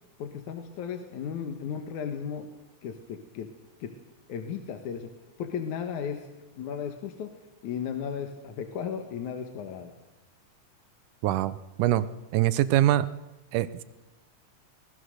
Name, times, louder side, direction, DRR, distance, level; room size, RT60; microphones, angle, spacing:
voice 1, 0.2-2.5 2.8-3.5 3.8-3.9 4.3-5.1 5.4-6.3 6.6-7.3 7.6-9.9, left 7 dB, 75° left, 5 dB, 2.7 m, -35 dB
voice 2, 11.2-12.1 12.3-13.1 13.5-13.8, right 13 dB, 85° right, 15 dB, 2.4 m, -24 dB
24.5 x 19.0 x 6.5 m, 1.0 s
omnidirectional pair, 3.6 m